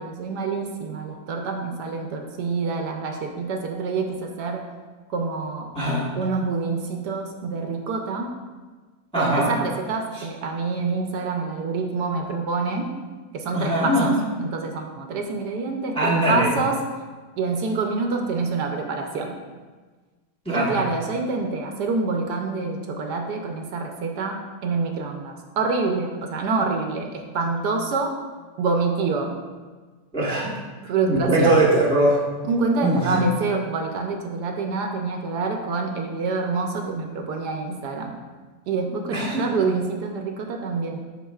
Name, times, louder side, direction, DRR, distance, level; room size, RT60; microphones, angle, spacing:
voice 1, 0.0-4.6 5.1-5.7 6.2-8.3 9.1-12.9 13.3-14.1 14.4-16.8 17.4-19.4 20.5-28.1 28.6-29.3 30.9-31.7 32.4-38.2 38.7-41.0, right 4 dB, 70° right, 3 dB, 1.2 m, -26 dB
voice 2, 5.7-6.1 9.1-9.6 10.1-10.2 13.5-14.2 15.9-16.5 20.4-20.8 30.1-30.6 31.1-32.2 32.8-33.3 39.1-39.5, right 1 dB, 5° left, -5 dB, 0.8 m, -21 dB
11.5 x 4.3 x 2.3 m, 1.4 s
omnidirectional pair, 1.9 m